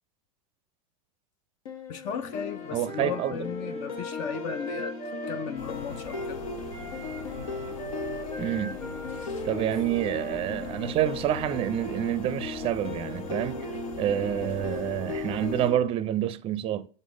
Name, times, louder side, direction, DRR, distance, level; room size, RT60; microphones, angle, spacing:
sound 1, 1.7-15.8, left 4 dB, 85° left, 1.2 m, -37 dB
voice 1, 1.9-5.0 5.3-6.4, left 7 dB, 45° left, 0.5 m, -35 dB
Wind instrument woodwind instrument, 2.3-6.3 6.7-10.9, equal, 15° left, 1.0 m, -41 dB
voice 2, 2.7-3.4 8.4-8.8 9.4-13.7 14.0-16.9, right 11 dB, 30° right, 0.5 m, -28 dB
sound 2, 5.6-15.7, equal, 70° left, 2.2 m, -44 dB
5.2 x 4.1 x 5.0 m
hypercardioid pair, 120°, 18 cm